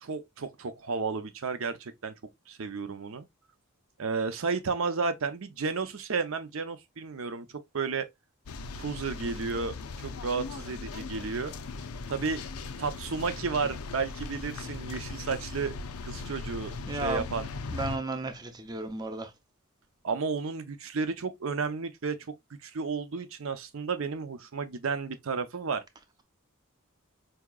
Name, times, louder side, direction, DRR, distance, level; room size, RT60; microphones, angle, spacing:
voice 1, 0.0-2.1 2.5-3.2 4.0-8.1 8.8-11.5 12.1-12.4 12.8-15.7 16.0-17.5 20.0-22.2 22.6-25.8, right 4 dB, 65° right, 0.6 m, -32 dB
sound 1, 8.5-18.0, left 4 dB, 80° left, 0.5 m, -39 dB
voice 2, 16.9-17.3 17.7-19.3, right 2 dB, 20° right, 0.5 m, -33 dB
4.7 x 2.8 x 2.3 m
head